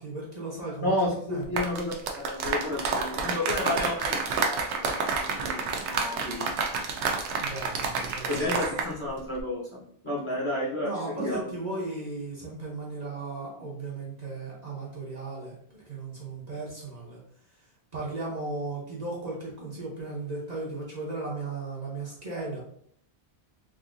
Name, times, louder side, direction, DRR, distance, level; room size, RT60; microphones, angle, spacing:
voice 1, 0.0-1.6 7.4-8.7 10.8-17.2 17.9-22.6, right 3 dB, 40° right, -5 dB, 0.9 m, -36 dB
voice 2, 0.8-6.6 8.3-11.5, left 1 dB, 30° left, -7 dB, 1.0 m, -31 dB
sound 1, 1.4-8.9 9.2-9.4, right 4 dB, 90° right, 0.9 m, -29 dB
3.7 x 2.6 x 2.5 m, 0.66 s
omnidirectional pair, 1.1 m